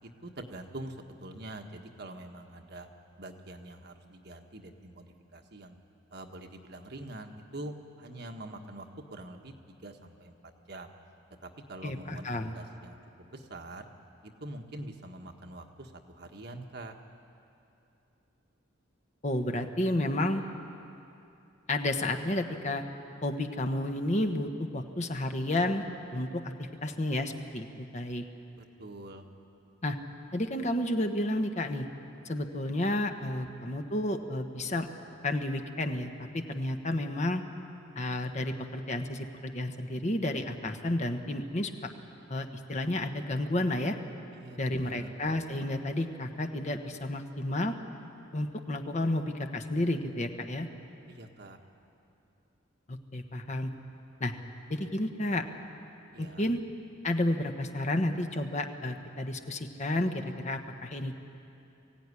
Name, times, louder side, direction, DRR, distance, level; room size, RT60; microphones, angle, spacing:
voice 1, 0.0-2.9 3.2-5.8 6.1-8.8 9.1-9.5 9.8-10.3 10.7-10.9 11.4-12.3 12.5-13.9 14.2-16.9 28.6-29.2 44.3-45.1 51.1-51.6 56.1-56.5, right 1 dB, 55° right, 4 dB, 1.4 m, -45 dB
voice 2, 11.8-12.5 19.2-20.4 21.7-22.8 23.2-25.8 26.1-28.2 29.8-30.0 30.3-31.9 32.2-34.9 35.2-37.4 37.9-41.7 42.3-44.0 44.6-47.8 48.3-50.7 52.9-53.7 54.2-54.3 54.7-55.4 56.2-56.6 57.0-61.1, left 1 dB, 35° left, 5 dB, 1.2 m, -31 dB
22.5 x 16.0 x 9.8 m, 2.8 s
head